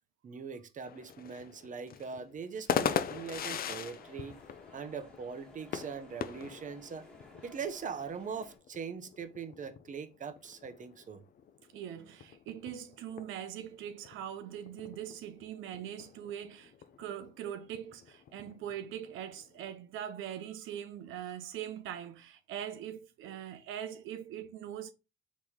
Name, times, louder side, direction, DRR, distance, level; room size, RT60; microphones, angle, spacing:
voice 1, 0.2-4.4 4.7-7.1 7.4-11.2, right 6 dB, 40° right, 0.7 m, -41 dB
sound 1, 0.8-19.7, left 8 dB, 50° left, 0.4 m, -41 dB
sound 2, 3.1-8.6, left 1 dB, 5° left, 1.4 m, -56 dB
voice 2, 11.7-16.7 17.0-24.9, right 10 dB, 90° right, 0.5 m, -42 dB
4.0 x 3.1 x 3.5 m
cardioid pair, 90°, 20 cm